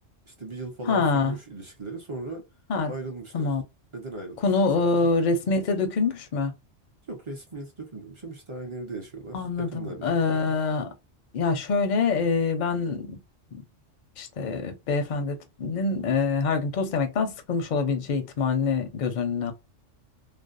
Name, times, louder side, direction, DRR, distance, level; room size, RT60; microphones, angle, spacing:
voice 1, 0.3-2.4 2.9-3.5 3.9-5.1 7.1-10.5, right 3 dB, 35° right, 0.5 m, -38 dB
voice 2, 0.9-1.4 2.7-2.9 3.3-3.6 4.4-6.5 9.3-9.7 10.0-10.9 11.3-13.2 14.2-19.5, left 4 dB, 50° left, 0.5 m, -25 dB
2.5 x 2.1 x 2.5 m
omnidirectional pair, 1.3 m